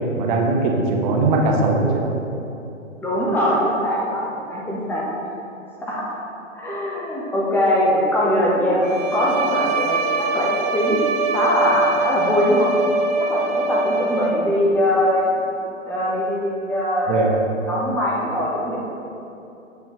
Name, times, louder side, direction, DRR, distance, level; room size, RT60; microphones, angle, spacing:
voice 1, 0.2-2.1 17.1-17.3, right 3 dB, 35° right, 0 dB, 1.1 m, -19 dB
voice 2, 3.0-5.0 5.9-6.2 6.5-11.0 11.3-12.7 13.2-15.4 15.9-17.2 17.7-18.8, equal, 5° left, -5 dB, 0.7 m, -21 dB
Bowed string instrument, 8.8-14.6, right 3 dB, 60° right, 0.9 m, -23 dB
8.2 x 5.7 x 3.0 m, 2.8 s
hypercardioid pair, 125°, 39 cm